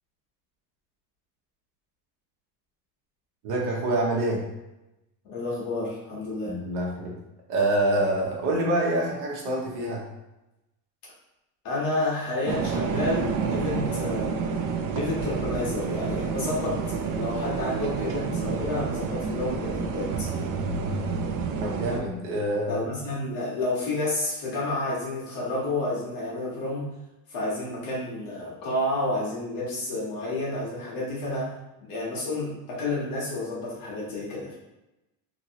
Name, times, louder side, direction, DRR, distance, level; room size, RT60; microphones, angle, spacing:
voice 1, 3.4-4.4 6.4-7.2 7.5-10.0 21.6-22.8, right 1 dB, 75° right, -2 dB, 1.1 m, -26 dB
voice 2, 5.2-6.5 11.6-14.3 14.9-20.3 22.7-27.0 27.3-34.6, left 2 dB, 55° left, -6 dB, 1.2 m, -30 dB
sound 1, 12.4-22.0, right 5 dB, 55° right, 0.4 m, -29 dB
3.0 x 2.7 x 2.8 m, 0.94 s
cardioid pair, 140°, 40 cm